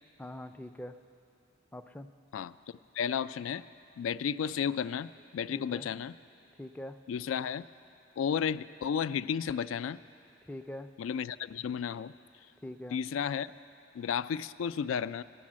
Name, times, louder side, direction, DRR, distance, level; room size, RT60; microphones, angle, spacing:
voice 1, 0.2-0.9 1.7-2.1 5.5-5.9 6.6-7.0 10.5-10.9 12.6-13.0, left 1 dB, 10° left, 9 dB, 0.3 m, -43 dB
voice 2, 2.9-3.6 4.0-6.2 7.1-7.7 8.2-10.0 11.0-12.1 12.9-13.5 13.9-15.2, left 7 dB, 85° left, 16 dB, 0.3 m, -33 dB
14.5 x 10.5 x 7.4 m, 2.7 s
head